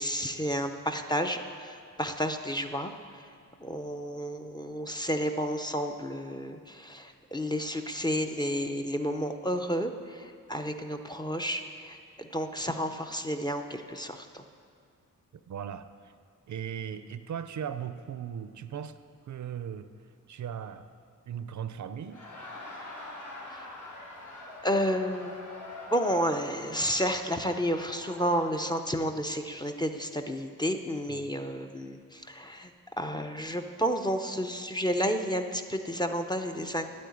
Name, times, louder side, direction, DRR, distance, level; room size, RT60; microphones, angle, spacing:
voice 1, 0.0-3.3 3.6-14.4 23.5-23.7 24.6-25.4 25.9-32.7 33.0-36.9, equal, 15° left, 5 dB, 0.5 m, -31 dB
voice 2, 15.5-16.1 16.5-19.0 19.3-19.9 20.3-20.9 21.3-22.5 31.1-31.2, right 8 dB, 60° right, 11 dB, 0.5 m, -38 dB
Laughter, 22.0-28.8, left 2 dB, 65° left, 3.1 m, -45 dB
9.1 x 8.6 x 9.3 m, 2.2 s
wide cardioid pair, 155°, 33 cm